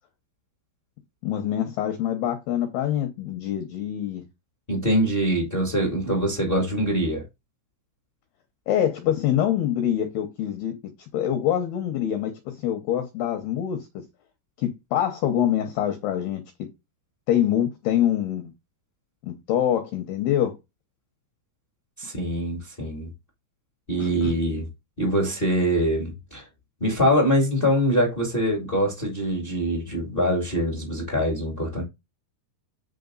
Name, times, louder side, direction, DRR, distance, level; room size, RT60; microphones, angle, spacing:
voice 1, 1.2-4.2 8.7-10.7 11.1-14.0 14.6-16.4 17.3-18.5 19.2-20.5 24.0-24.3, left 10 dB, 75° left, 2.4 m, -25 dB
voice 2, 4.7-7.2 22.0-23.1 23.9-24.6 25.0-26.5 26.8-31.8, equal, 35° left, 0.9 m, -24 dB
8.5 x 5.5 x 3.9 m
omnidirectional pair, 5.9 m